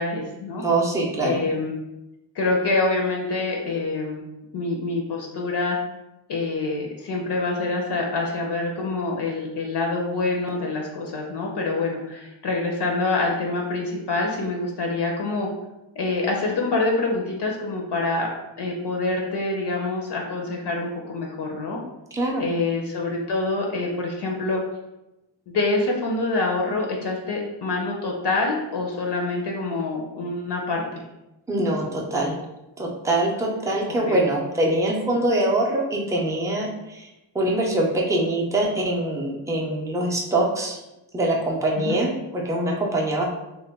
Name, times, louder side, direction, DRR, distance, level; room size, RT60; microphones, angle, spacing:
voice 1, 0.0-0.6 1.2-1.8 2.4-4.2 4.5-5.8 6.3-15.5 16.0-18.3 18.6-21.8 22.4-24.6 25.5-31.0 34.0-34.3 41.8-42.0, left 3 dB, 60° left, 0 dB, 0.6 m, -26 dB
voice 2, 0.6-1.4 22.1-22.5 31.5-32.4 32.8-37.1 37.3-40.8 41.1-43.2, right 1 dB, 5° right, -2 dB, 0.4 m, -23 dB
3.0 x 2.2 x 3.4 m, 0.96 s
wide cardioid pair, 135°, 47 cm